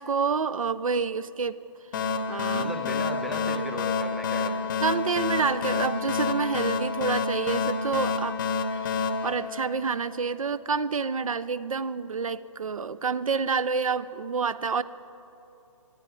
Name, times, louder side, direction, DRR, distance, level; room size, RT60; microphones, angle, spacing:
voice 1, 0.0-1.6 2.3-3.0 4.8-8.4 8.7-14.8, right 5 dB, 85° right, 16 dB, 0.4 m, -28 dB
sound 1, 1.9-10.3, left 5 dB, 35° left, 0.7 m, -29 dB
voice 2, 2.5-4.7, equal, ahead, 4 dB, 0.5 m, -36 dB
14.0 x 9.0 x 5.6 m, 2.9 s
figure-of-eight pair, 140°, 17 cm